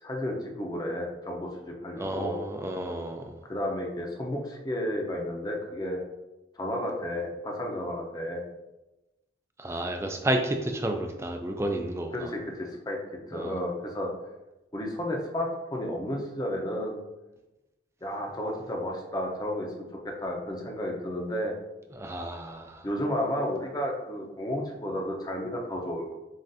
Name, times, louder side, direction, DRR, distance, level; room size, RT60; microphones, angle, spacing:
voice 1, 0.0-2.4 3.4-6.0 6.6-8.4 12.1-13.0 13.3-14.1 14.7-17.0 18.0-21.5 22.8-26.1, left 1 dB, 20° left, 0 dB, 0.6 m, -32 dB
voice 2, 2.0-3.4 9.6-12.3 13.3-13.6 21.9-22.9, right 1 dB, 15° right, 4 dB, 0.4 m, -31 dB
7.4 x 2.5 x 2.6 m, 1.0 s
head